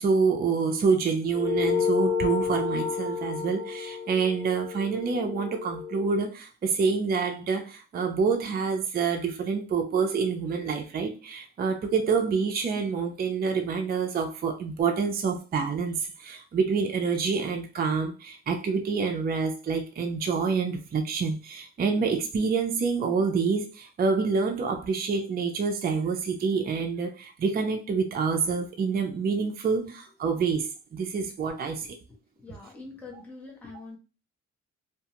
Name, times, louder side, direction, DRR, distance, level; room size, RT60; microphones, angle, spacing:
voice 1, 0.0-31.9, right 5 dB, 30° right, 4 dB, 0.4 m, -27 dB
sound 1, 1.3-6.1, left 6 dB, 25° left, 1.1 m, -30 dB
voice 2, 32.4-34.0, left 3 dB, 5° left, -2 dB, 0.8 m, -44 dB
2.5 x 2.2 x 2.9 m, 0.33 s
cardioid pair, 90°, 30 cm